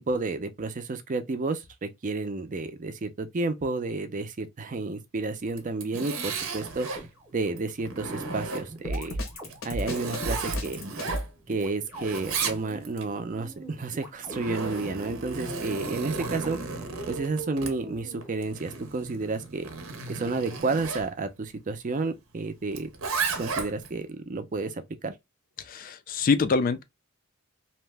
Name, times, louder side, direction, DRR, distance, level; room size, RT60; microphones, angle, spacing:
voice 1, 0.0-7.0 7.3-9.2 9.6-10.8 11.5-16.6 17.1-19.7 20.1-22.9 23.4-25.1, right 3 dB, 40° right, 0.5 m, -31 dB
Zipper (clothing), 5.5-7.1 7.6-8.9 9.4-11.6 11.9-13.0 13.9-21.1 22.7-23.9, right 4 dB, 80° right, 0.7 m, -34 dB
sound 1, 6.5-7.7 8.7-18.9 20.1-20.6, right 2 dB, 10° right, 0.8 m, -44 dB
Drum kit, 8.8-11.3, equal, 70° left, 0.9 m, -32 dB
voice 2, 25.7-26.8, left 4 dB, 40° left, 0.4 m, -24 dB
2.8 x 2.1 x 3.2 m
head